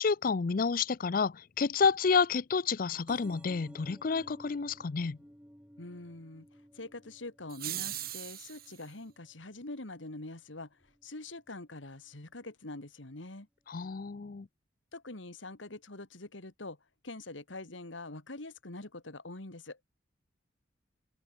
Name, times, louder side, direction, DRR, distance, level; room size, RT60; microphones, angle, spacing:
voice 1, 0.0-5.2 13.7-14.5, left 5 dB, 45° left, 0.5 m, -29 dB
sound 1, 3.1-10.3 10.8-11.2 12.1-12.2 12.4-12.5 12.7-12.8, equal, 5° right, 3.9 m, -56 dB
voice 2, 5.8-6.5 6.7-13.5 14.9-16.8 17.0-19.8, left 2 dB, 85° left, 2.4 m, -44 dB
sound 2, 7.5-8.8, right 13 dB, 50° right, 5.2 m, -39 dB
open air
head